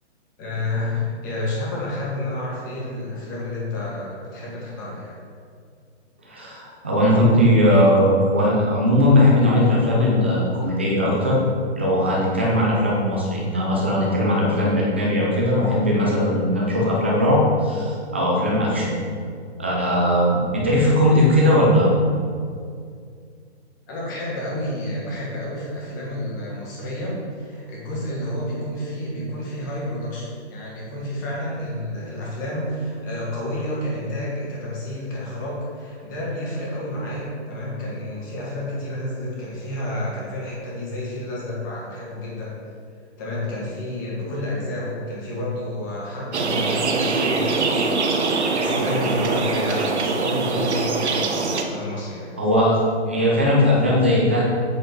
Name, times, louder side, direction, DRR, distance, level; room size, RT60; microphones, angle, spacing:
voice 1, 0.4-5.2 23.9-42.6 43.2-48.0 48.3-52.3, left 1 dB, 15° left, -5 dB, 1.6 m, -30 dB
voice 2, 6.2-11.4 11.7-19.0 19.6-21.9 52.4-52.8 53.1-54.5, left 1 dB, 10° right, -5 dB, 0.5 m, -19 dB
sound 1, 46.3-51.6, right 3 dB, 75° right, 1.2 m, -23 dB
8.2 x 6.2 x 4.7 m, 2.2 s
hypercardioid pair, 175°, 34 cm